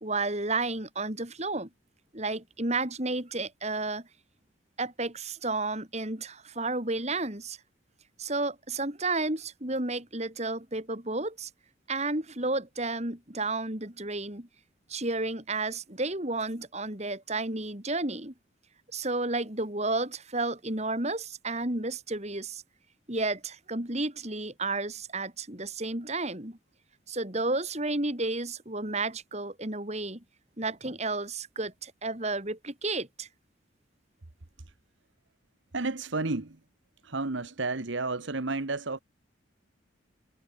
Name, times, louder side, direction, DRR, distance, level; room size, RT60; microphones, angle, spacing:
voice 1, 0.0-1.7 2.1-4.1 4.8-7.6 8.2-11.5 11.9-14.5 14.9-18.3 18.9-22.6 23.1-26.6 27.1-30.2 30.6-33.3, right 2 dB, 35° right, 3.4 m, -32 dB
voice 2, 35.7-36.6 37.0-39.0, right 3 dB, 70° right, 1.3 m, -31 dB
head